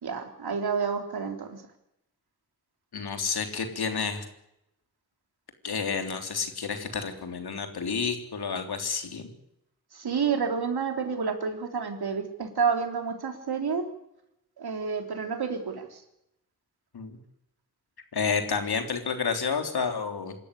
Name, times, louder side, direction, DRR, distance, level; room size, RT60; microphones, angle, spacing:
voice 1, 0.0-1.6 9.9-13.8 14.6-16.0, right 6 dB, 85° right, 5 dB, 3.6 m, -29 dB
voice 2, 2.9-4.3 5.6-9.3 16.9-17.2 18.1-20.4, left 5 dB, 85° left, 6 dB, 3.6 m, -30 dB
27.0 x 13.5 x 10.0 m, 0.82 s
wide cardioid pair, 130°, 37 cm